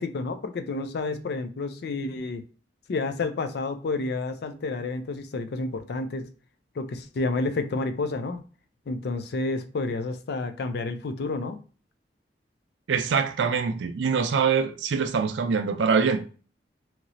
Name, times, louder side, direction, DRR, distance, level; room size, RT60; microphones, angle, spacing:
voice 1, 0.0-2.4 2.9-6.2 6.8-8.4 8.9-11.6, left 3 dB, 60° left, 0.4 m, -30 dB
voice 2, 12.9-16.2, right 5 dB, 90° right, 0.4 m, -24 dB
2.9 x 2.8 x 2.6 m
head